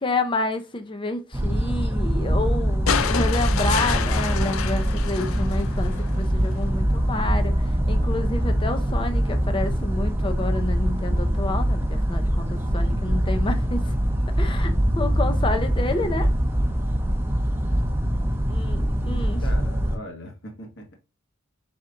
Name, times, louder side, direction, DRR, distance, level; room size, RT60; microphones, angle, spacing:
voice 1, 0.0-7.5 7.9-12.5 12.7-13.8 14.4-16.3 18.5-19.4, left 2 dB, 25° left, 0.6 m, -29 dB
sound 1, 1.3-20.0, equal, 10° right, 0.7 m, -23 dB
sound 2, 2.9-6.2 7.5-7.6, left 7 dB, 85° left, 0.4 m, -28 dB
voice 2, 19.0-21.0, equal, 60° left, 1.3 m, -40 dB
4.8 x 4.2 x 2.5 m
head